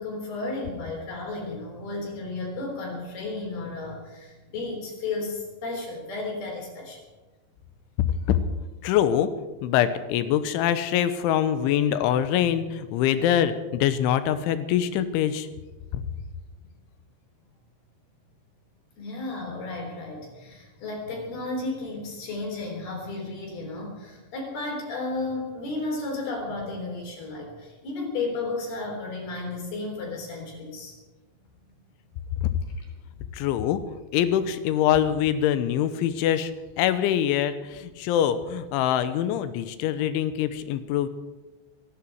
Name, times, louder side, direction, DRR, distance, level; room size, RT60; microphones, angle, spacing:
voice 1, 0.0-7.0 12.4-12.5 19.0-30.9 31.6-31.7 33.1-33.3, left 3 dB, 55° left, 0 dB, 5.6 m, -33 dB
voice 2, 8.0-8.4 8.8-9.3 9.6-15.5 15.9-16.0 32.4-32.5 33.3-33.8 34.1-36.5 36.8-41.1, left 10 dB, 85° left, 12 dB, 3.3 m, -24 dB
26.0 x 11.0 x 4.7 m, 1.2 s
omnidirectional pair, 5.4 m